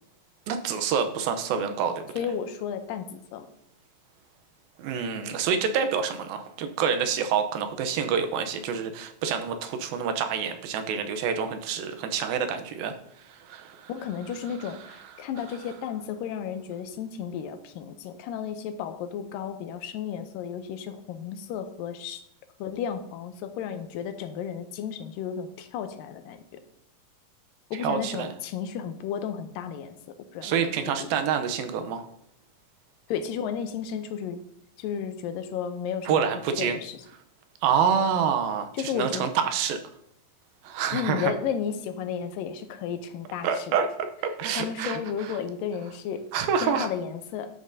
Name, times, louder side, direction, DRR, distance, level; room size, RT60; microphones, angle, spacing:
voice 1, 0.5-2.0 4.8-12.9 13.3-13.9 27.8-28.3 30.4-32.1 36.1-36.8 37.6-39.8 40.6-41.3 43.4-43.9 44.2-45.4 46.3-46.9, right 7 dB, 90° right, 7 dB, 2.6 m, -27 dB
voice 2, 2.2-3.5 13.9-22.2 22.6-26.6 27.7-30.0 30.3-30.6 30.9-31.1 33.1-34.4 34.8-37.0 37.9-38.0 38.7-39.3 40.9-43.8 44.6-46.3 46.6-47.5, left 8 dB, 85° left, 8 dB, 2.3 m, -33 dB
11.0 x 7.5 x 2.7 m, 0.70 s
omnidirectional pair, 4.1 m